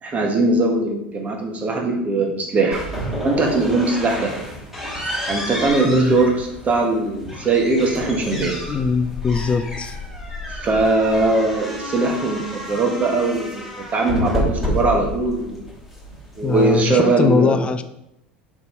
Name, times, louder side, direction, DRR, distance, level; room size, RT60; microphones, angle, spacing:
voice 1, 0.0-2.8 3.2-4.3 5.3-8.5 10.5-15.6 16.4-17.6, right 3 dB, 25° right, 1 dB, 1.7 m, -20 dB
sound 1, 2.7-16.8, equal, 5° right, 2.8 m, -30 dB
voice 2, 5.8-6.2 8.7-10.0 16.4-17.8, left 5 dB, 20° left, 11 dB, 0.5 m, -21 dB
6.7 x 6.2 x 3.5 m, 0.84 s
figure-of-eight pair, 75°, 5 cm